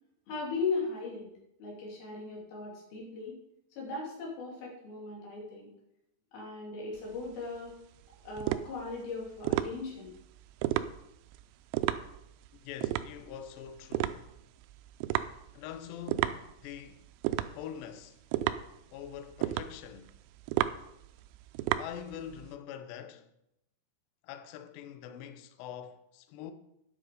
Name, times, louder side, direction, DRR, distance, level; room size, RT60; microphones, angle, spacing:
voice 1, 0.3-1.3 1.6-3.4 3.8-5.7 6.3-7.8 8.2-10.1, left 4 dB, 50° left, 4.1 m, -37 dB
sound 1, 7.0-22.5, right 14 dB, 90° right, 3.3 m, -34 dB
voice 2, 12.6-14.3 15.5-17.0 17.5-18.2 18.9-20.1 21.8-23.3 24.2-26.5, left 9 dB, 85° left, 2.4 m, -44 dB
10.0 x 7.8 x 5.1 m
omnidirectional pair, 5.9 m